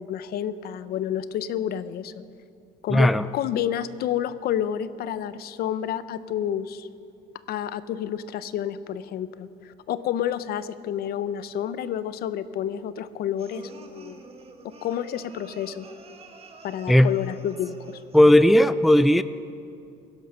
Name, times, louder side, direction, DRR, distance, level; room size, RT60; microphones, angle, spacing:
voice 1, 0.0-2.1 2.8-6.9 7.5-14.2 14.6-15.9 16.6-18.0, left 10 dB, 65° left, 14 dB, 0.6 m, -30 dB
voice 2, 2.9-3.2 16.9-17.1 18.1-19.2, left 1 dB, ahead, 14 dB, 0.3 m, -16 dB
sound 1, 13.4-18.3, right 3 dB, 35° right, 1.4 m, -47 dB
17.0 x 11.5 x 5.5 m, 2.5 s
cardioid pair, 110°, 17 cm